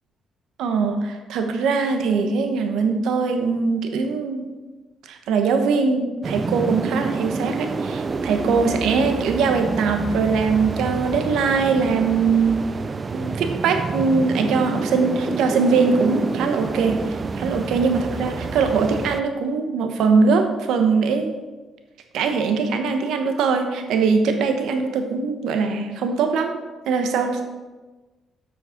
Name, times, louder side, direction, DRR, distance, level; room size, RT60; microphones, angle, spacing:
voice 1, 0.6-4.5 5.1-12.7 13.1-17.0 17.4-21.4 22.1-26.6 26.8-27.5, right 4 dB, 85° right, 6 dB, 1.1 m, -21 dB
sound 1, 6.2-19.2, right 4 dB, 35° right, 0.5 m, -28 dB
8.0 x 6.4 x 5.1 m, 1.2 s
cardioid pair, 90°, 0 cm